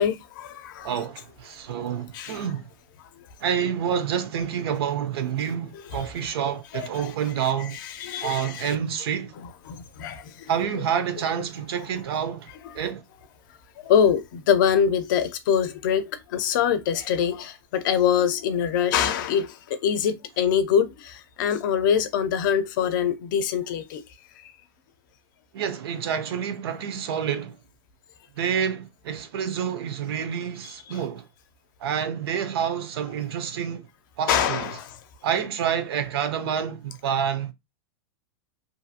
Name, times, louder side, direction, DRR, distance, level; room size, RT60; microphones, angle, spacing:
voice 1, 0.0-0.9 2.1-2.4 6.7-7.1 8.0-8.8 9.7-10.5 13.9-24.0 30.9-31.0 34.3-35.0, left 8 dB, 55° left, 0.5 m, -24 dB
voice 2, 0.8-2.6 3.4-7.8 8.2-9.3 10.5-12.5 12.7-13.0 25.5-27.6 28.4-31.3 31.8-33.8 34.2-34.8 35.2-37.5, right 8 dB, 85° right, 0.6 m, -28 dB
2.7 x 2.4 x 2.7 m
supercardioid pair, 170°, 13 cm